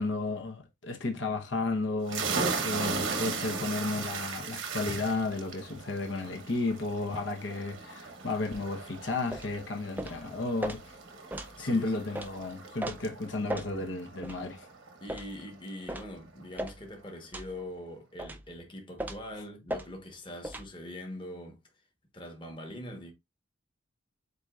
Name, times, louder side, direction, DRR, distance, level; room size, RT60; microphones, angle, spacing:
voice 1, 0.0-10.9 11.6-14.7, left 3 dB, 70° left, 0.9 m, -33 dB
sound 1, 2.1-15.4, right 4 dB, 85° right, 1.0 m, -37 dB
sound 2, 9.3-9.5 10.0-10.2 10.6-10.8 11.3-11.5 12.2-12.3 12.8-13.0 13.5-13.7 14.2-14.4 15.1-15.3 15.9-16.1 16.6-16.8 17.3-17.5 18.2-18.4 19.0-19.3 19.7-19.9 20.4-20.7, right 1 dB, 10° right, 0.3 m, -36 dB
voice 2, 11.6-11.9 15.0-21.6 22.1-23.1, left 1 dB, 25° left, 1.1 m, -43 dB
7.9 x 2.7 x 2.4 m
head